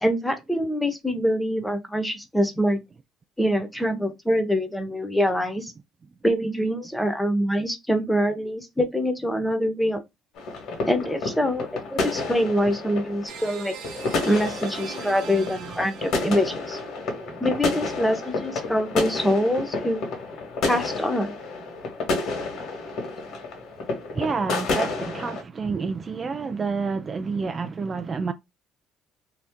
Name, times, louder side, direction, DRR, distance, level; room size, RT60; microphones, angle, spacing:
voice 1, 0.0-2.8 3.4-5.7 6.2-10.0 10.9-13.7 14.2-16.8 17.4-20.0 20.7-21.3, equal, 5° left, 0.9 m, -24 dB
sound 1, 10.4-25.4, left 3 dB, 70° left, 1.3 m, -30 dB
sound 2, 13.3-17.0, right 7 dB, 80° right, 0.8 m, -41 dB
voice 2, 24.1-28.3, right 5 dB, 35° right, 0.3 m, -29 dB
2.8 x 2.4 x 3.5 m
cardioid pair, 90°, 0 cm